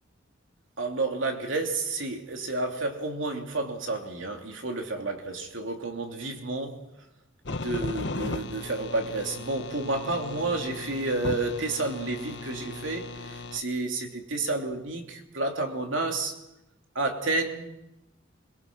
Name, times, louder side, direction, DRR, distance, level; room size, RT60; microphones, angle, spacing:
voice 1, 0.8-6.8 7.5-16.4 16.9-17.7, right 2 dB, 70° right, 3 dB, 3.1 m, -30 dB
sound 1, 7.4-13.6, left 3 dB, 60° left, 1.3 m, -37 dB
25.0 x 23.0 x 6.2 m, 0.88 s
head